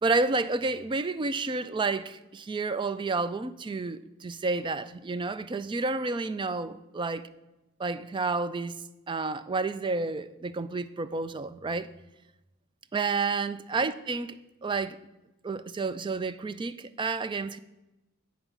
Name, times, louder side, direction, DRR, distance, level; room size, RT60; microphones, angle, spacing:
voice 1, 0.0-7.2 7.8-8.8 9.1-11.9 12.9-14.4 14.6-15.0 15.4-17.6, right 3 dB, 20° right, 0.3 m, -30 dB
8.8 x 5.4 x 7.2 m
head